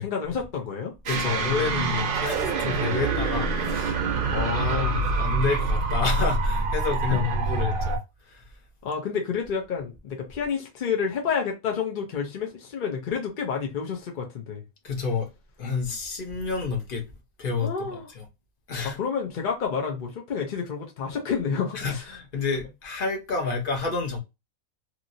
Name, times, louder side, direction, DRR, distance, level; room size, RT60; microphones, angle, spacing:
voice 1, 0.0-0.9 1.2-1.8 4.3-5.0 7.1-7.2 8.8-14.6 17.6-18.1 18.8-22.0, left 6 dB, 60° left, 0.5 m, -29 dB
voice 2, 1.1-4.0 4.3-8.4 14.8-15.3 15.6-17.0 17.4-18.3 18.7-19.0 21.7-24.2, left 4 dB, 45° left, 0.9 m, -29 dB
sound 1, 1.1-8.0, right 3 dB, 55° right, 0.6 m, -26 dB
2.9 x 2.5 x 2.6 m
omnidirectional pair, 1.5 m